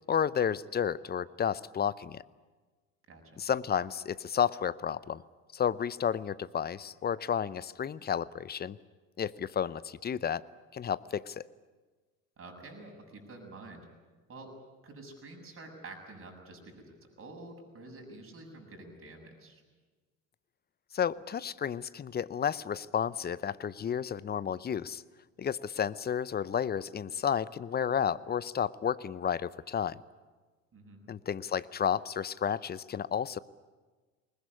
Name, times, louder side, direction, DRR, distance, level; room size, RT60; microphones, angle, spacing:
voice 1, 0.1-2.2 3.4-5.2 5.5-8.8 9.2-10.4 10.7-11.5 20.9-25.0 25.4-30.0 31.1-33.4, left 8 dB, 25° left, 19 dB, 0.7 m, -31 dB
voice 2, 3.1-3.4 12.4-13.9 14.3-14.5 14.8-19.6 30.7-31.0, right 2 dB, 35° right, 2 dB, 7.3 m, -48 dB
21.5 x 20.0 x 10.0 m, 1.3 s
hypercardioid pair, 70°, 39 cm